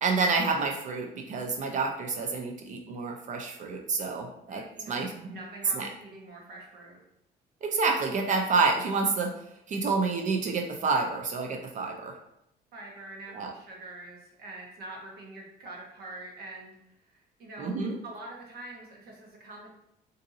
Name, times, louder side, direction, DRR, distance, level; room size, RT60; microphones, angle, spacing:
voice 1, 0.0-4.6 4.9-5.4 5.7-5.9 7.6-9.3 9.7-12.1 13.3-13.5 17.6-18.0, right 4 dB, 45° right, 3 dB, 0.5 m, -28 dB
voice 2, 4.5-7.0 12.7-17.7 18.0-19.7, right 2 dB, 70° right, -1 dB, 1.1 m, -45 dB
3.8 x 2.6 x 2.6 m, 0.82 s
cardioid pair, 110°, 17 cm